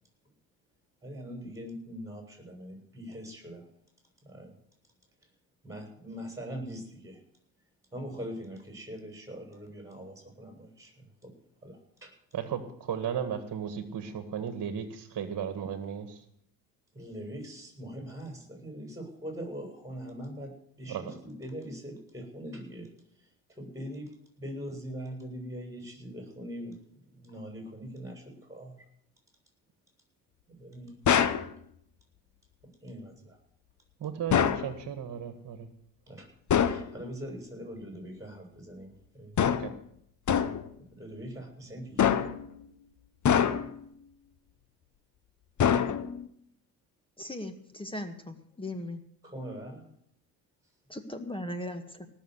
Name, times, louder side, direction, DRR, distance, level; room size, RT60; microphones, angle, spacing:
voice 1, 1.0-3.6 4.2-4.5 5.6-7.2 7.9-11.3 11.6-12.1 16.9-22.9 23.2-24.1 24.4-26.8 27.1-28.9 30.5-31.0 32.8-33.4 36.1-36.3 36.6-39.4 40.9-42.1 49.2-49.8, equal, 5° right, 2 dB, 7.7 m, -42 dB
voice 2, 12.3-16.2 20.9-21.2 34.0-35.7 39.5-39.7, right 8 dB, 45° right, 8 dB, 1.9 m, -35 dB
sound 1, 31.1-31.5 34.3-34.7 36.5-36.9 39.4-39.8 40.3-40.7 42.0-42.5 43.3-43.8 45.6-46.3, left 8 dB, 40° left, 1.1 m, -25 dB
voice 3, 47.2-49.0 50.9-52.1, left 1 dB, 10° left, 8 dB, 1.8 m, -38 dB
18.5 x 6.9 x 8.2 m, 0.70 s
supercardioid pair, 70°, 45 cm